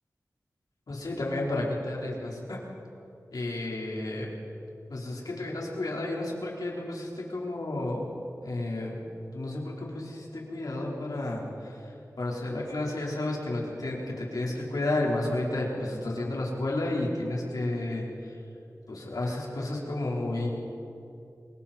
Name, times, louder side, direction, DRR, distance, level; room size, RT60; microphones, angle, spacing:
voice 1, 0.9-2.6 3.3-4.3 4.9-8.1 8.4-9.0 9.3-11.7 12.2-18.1 18.9-20.5, left 2 dB, 85° left, -3 dB, 4.4 m, -31 dB
28.0 x 22.5 x 4.5 m, 2.7 s
wide cardioid pair, 50°, 6 cm